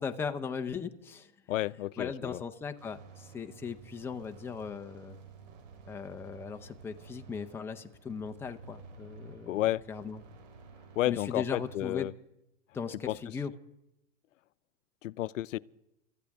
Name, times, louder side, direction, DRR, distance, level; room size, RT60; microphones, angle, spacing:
voice 1, 0.0-1.3 2.0-5.1 5.9-9.6 9.9-10.2 11.1-12.1 12.7-13.5, left 6 dB, 5° left, 0.5 m, -38 dB
voice 2, 1.5-2.4 9.5-9.8 11.0-12.1 13.1-13.2 15.0-15.6, left 15 dB, 80° left, 0.6 m, -31 dB
sound 1, 2.8-11.8, right 4 dB, 80° right, 3.8 m, -52 dB
28.0 x 14.0 x 3.5 m
hypercardioid pair, 140°, 38 cm